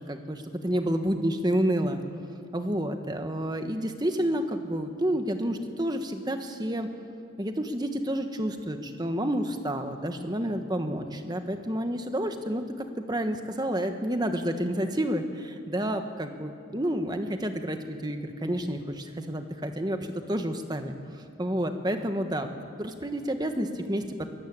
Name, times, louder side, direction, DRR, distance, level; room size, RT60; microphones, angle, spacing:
voice 1, 0.1-2.0 2.5-6.9 7.4-12.6 13.0-20.0 20.3-20.9 21.4-22.5 22.8-24.3, right 1 dB, 20° right, 6 dB, 1.3 m, -29 dB
23.0 x 13.0 x 8.8 m, 2.7 s
head